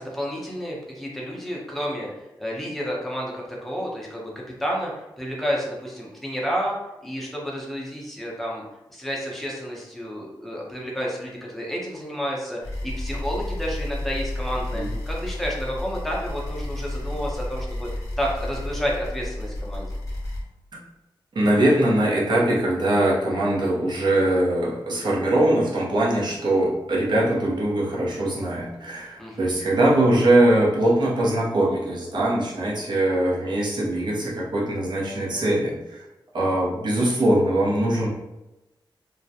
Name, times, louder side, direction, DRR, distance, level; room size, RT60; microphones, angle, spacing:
voice 1, 0.0-2.1 2.4-4.3 4.6-4.9 5.2-6.7 7.0-8.6 8.9-17.9 18.2-19.9 29.2-29.5, equal, ahead, -4 dB, 0.6 m, -30 dB
sound 1, 12.6-20.4, left 1 dB, 40° left, 0.6 m, -31 dB
voice 2, 21.3-36.0 36.3-38.1, right 1 dB, 60° right, -4 dB, 0.7 m, -22 dB
2.4 x 2.1 x 2.6 m, 0.97 s
wide cardioid pair, 130°, 9 cm